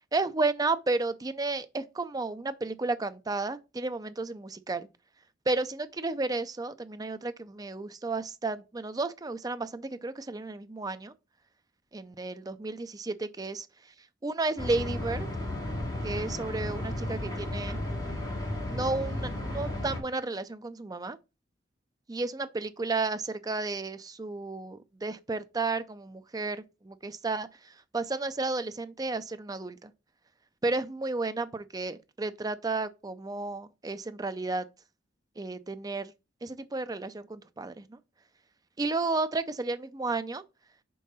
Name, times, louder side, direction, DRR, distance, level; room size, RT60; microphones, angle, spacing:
voice 1, 0.1-4.9 5.5-11.1 11.9-13.6 14.2-15.3 16.0-17.8 18.7-21.2 22.1-27.5 27.9-29.9 30.6-34.7 35.4-36.1 36.4-38.0 38.8-40.4, right 3 dB, 20° right, 0.5 m, -32 dB
sound 1, 14.6-20.0, left 1 dB, 25° left, 2.8 m, -34 dB
5.4 x 3.7 x 5.4 m
head